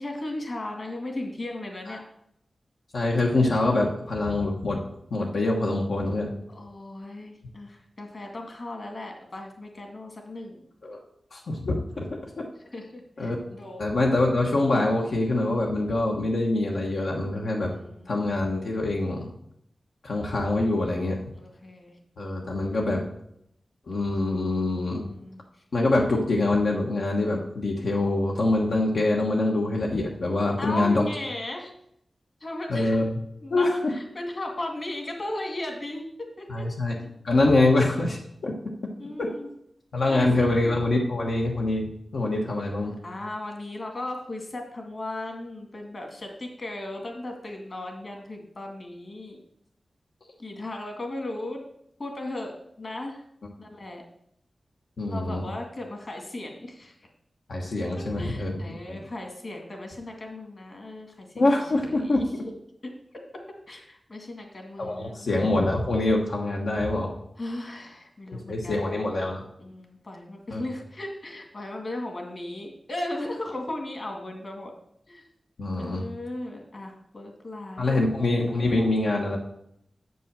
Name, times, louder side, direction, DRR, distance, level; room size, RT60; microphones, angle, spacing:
voice 1, 0.0-2.0 6.5-10.6 12.7-13.8 17.6-18.2 21.3-21.9 24.9-25.4 30.6-31.7 32.4-33.0 33.4-36.7 37.0-37.1 39.0-39.5 40.1-40.6 43.0-49.4 50.4-51.6 52.0-53.2 53.6-54.0 55.1-57.0 58.0-61.4 61.7-62.3 62.8-65.3 67.4-68.9 69.6-74.7 75.1-75.2 75.8-78.0, left 1 dB, 50° left, 2 dB, 2.1 m, -36 dB
voice 2, 2.9-4.8 5.1-6.3 10.8-11.0 11.3-12.0 12.4-12.5 13.2-13.4 13.8-17.7 18.1-19.3 20.0-21.2 22.2-23.0 23.9-25.1 25.7-31.0 32.7-33.2 33.5-33.9 36.5-37.0 37.2-38.5 39.2-39.3 39.9-42.9 55.0-55.5 57.5-59.0 61.3-62.4 64.8-67.1 68.3-69.4 70.5-70.6 75.6-76.0 77.8-79.4, left 2 dB, 85° left, -1 dB, 1.2 m, -25 dB
7.5 x 5.4 x 6.7 m, 0.74 s
wide cardioid pair, 85°, 0 cm